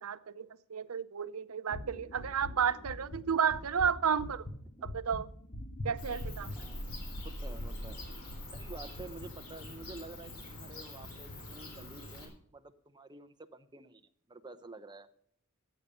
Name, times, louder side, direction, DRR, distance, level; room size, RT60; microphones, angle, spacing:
voice 1, 0.0-4.4 4.8-5.3 5.8-6.5, right 7 dB, 80° right, 0.6 m, -32 dB
sound 1, 1.7-10.7 11.0-11.4 11.7-12.1, left 1 dB, 55° left, 1.7 m, -44 dB
Bird / Cricket, 6.0-12.3, left 1 dB, 85° left, 4.0 m, -44 dB
voice 2, 7.2-8.0 8.5-14.0 14.3-15.2, right 3 dB, 20° right, 0.7 m, -49 dB
14.0 x 8.3 x 5.5 m
head